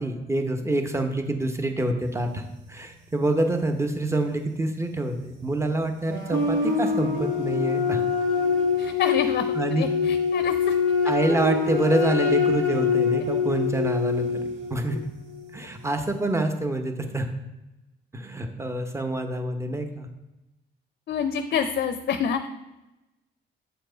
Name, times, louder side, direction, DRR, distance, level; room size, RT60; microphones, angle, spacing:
voice 1, 0.0-8.0 9.5-9.9 11.0-15.0 15.5-17.3 18.1-20.1, right 1 dB, 15° right, 6 dB, 0.9 m, -26 dB
sound 1, 6.1-15.4, left 5 dB, 80° right, 1.5 m, -25 dB
voice 2, 8.8-9.5 9.8-10.8 11.0-11.1 21.1-22.5, left 7 dB, 55° left, 9 dB, 0.5 m, -27 dB
7.8 x 4.5 x 3.9 m, 0.99 s
cardioid pair, 90°, 20 cm